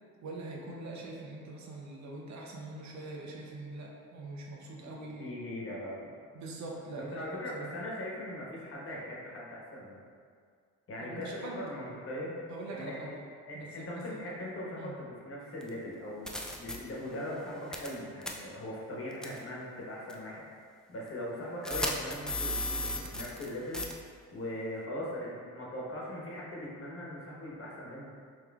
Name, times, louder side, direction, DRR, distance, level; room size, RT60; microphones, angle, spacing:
voice 1, 0.2-5.4 6.3-7.7 11.0-11.7 12.5-13.2 13.5-14.0 14.8-14.9, right 2 dB, 65° right, -1 dB, 0.8 m, -43 dB
voice 2, 4.8-6.1 6.9-10.0 10.9-12.4 12.7-13.2 13.5-23.9 24.3-28.1, left 1 dB, 45° left, -5 dB, 1.2 m, -40 dB
sound 1, 15.6-15.7 16.3-16.8 17.7-17.9 18.2-18.3 19.2-19.4 20.1-20.2 21.6-23.5 23.7-23.9, left 2 dB, ahead, 0.4 m, -34 dB
5.3 x 3.2 x 2.4 m, 2.1 s
cardioid pair, 90°, 30 cm